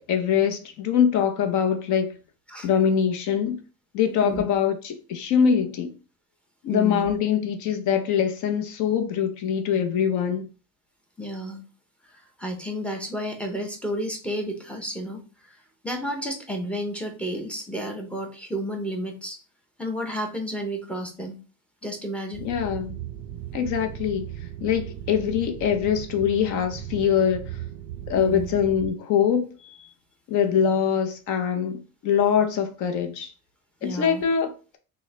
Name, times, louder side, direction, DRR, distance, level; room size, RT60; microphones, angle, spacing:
voice 1, 0.1-2.1 2.6-3.6 3.9-5.9 6.6-10.5 22.4-22.9 23.5-24.3 24.6-27.6 28.1-29.9 30.3-33.3 33.8-34.8, left 8 dB, 55° left, 0.7 m, -23 dB
voice 2, 6.7-7.1 11.2-11.6 12.4-15.2 15.5-15.6 15.8-19.4 19.8-21.4 21.8-22.5 28.2-28.5 33.8-34.2, equal, 5° left, 0.6 m, -31 dB
sound 1, 22.3-28.9, right 12 dB, 85° right, 0.5 m, -37 dB
6.0 x 2.1 x 3.2 m
cardioid pair, 165°, 36 cm